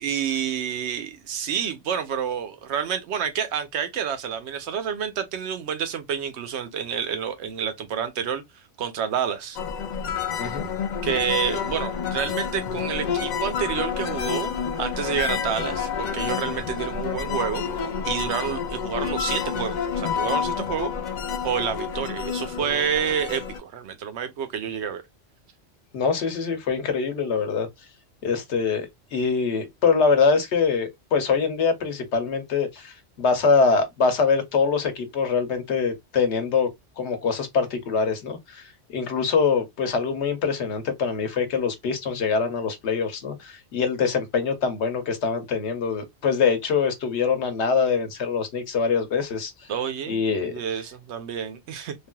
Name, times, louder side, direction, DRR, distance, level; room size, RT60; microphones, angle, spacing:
voice 1, 0.0-8.4 8.8-9.6 11.0-20.9 21.4-25.0 49.7-51.9, right 8 dB, 80° right, 0.9 m, -29 dB
sound 1, 9.6-23.6, left 7 dB, 60° left, 0.5 m, -29 dB
voice 2, 10.4-10.7 25.9-27.7 28.2-36.7 37.0-38.6 38.9-49.5 50.1-50.5, left 5 dB, 75° left, 1.1 m, -24 dB
3.2 x 2.4 x 2.2 m
omnidirectional pair, 1.2 m